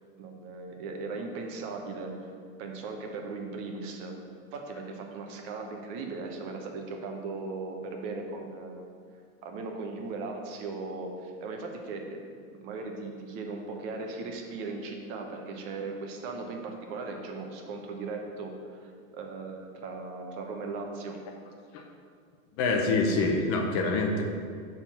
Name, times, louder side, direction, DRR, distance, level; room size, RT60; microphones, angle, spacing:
voice 1, 0.2-2.1 2.6-4.1 4.5-8.9 9.4-12.2 12.5-21.2, right 3 dB, 40° right, 3 dB, 1.0 m, -38 dB
voice 2, 22.6-24.2, left 3 dB, 35° left, 2 dB, 0.7 m, -26 dB
6.5 x 3.9 x 6.0 m, 2.1 s
supercardioid pair, 140°, 43 cm